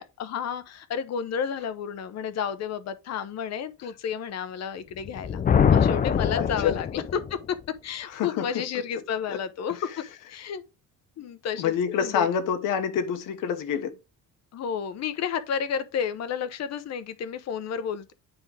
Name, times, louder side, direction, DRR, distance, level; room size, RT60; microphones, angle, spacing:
voice 1, 0.0-5.4 5.7-7.4 7.8-9.8 10.3-10.6 11.2-12.3 14.5-18.1, left 7 dB, 50° left, 0.9 m, -31 dB
Thunder, 5.0-7.4, left 7 dB, 25° left, 0.4 m, -23 dB
voice 2, 6.3-6.8 8.0-8.5 9.3-9.4 9.7-9.8 11.6-14.0, left 7 dB, 70° left, 1.3 m, -27 dB
9.0 x 3.7 x 3.4 m
cardioid pair, 140°, 33 cm